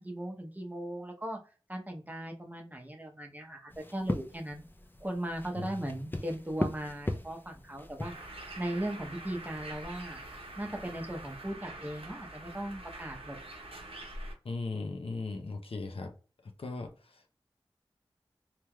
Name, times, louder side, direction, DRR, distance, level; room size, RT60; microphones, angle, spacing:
voice 1, 0.0-1.4 1.7-4.6 5.0-8.1 8.6-10.2 10.6-13.4, right 1 dB, 15° right, 2 dB, 0.8 m, -38 dB
sound 1, 3.7-11.3, left 1 dB, 20° left, 0.4 m, -40 dB
Bird, 8.0-14.3, right 1 dB, 80° right, 0.7 m, -45 dB
voice 2, 14.4-16.1 16.4-17.3, left 3 dB, 80° left, 4 dB, 0.6 m, -38 dB
3.3 x 2.9 x 2.2 m, 0.36 s
wide cardioid pair, 65°, 10 cm